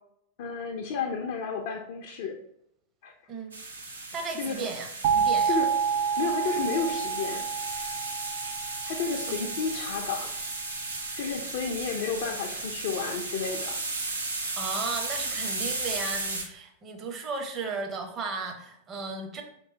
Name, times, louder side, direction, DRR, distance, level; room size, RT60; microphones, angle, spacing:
voice 1, 0.4-2.4 3.0-3.1 4.1-4.7 5.5-5.7 6.2-7.5 8.8-10.3 11.2-13.8, left 5 dB, 50° left, 2 dB, 0.4 m, -32 dB
sound 1, 3.5-16.4, right 3 dB, 75° right, 0.7 m, -35 dB
voice 2, 4.1-4.9 5.1-5.6 9.3-9.5 14.6-19.4, right 4 dB, 25° right, 4 dB, 0.7 m, -35 dB
sound 2, 5.0-9.8, right 6 dB, 45° right, 0.3 m, -28 dB
4.6 x 3.0 x 2.7 m, 0.76 s
figure-of-eight pair, 90°, 0 cm